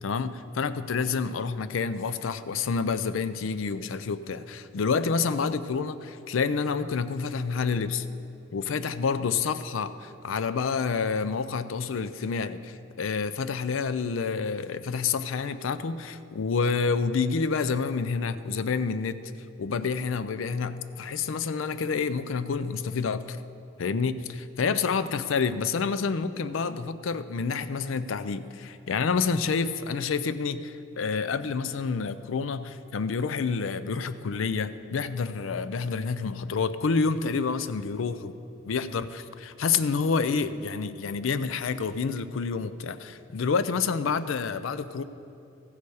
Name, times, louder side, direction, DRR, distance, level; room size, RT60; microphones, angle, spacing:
voice 1, 0.0-8.1 8.5-19.2 19.6-23.4 23.8-38.3 38.6-45.0, left 5 dB, 80° left, 13 dB, 0.4 m, -28 dB
14.5 x 6.9 x 4.8 m, 2.7 s
head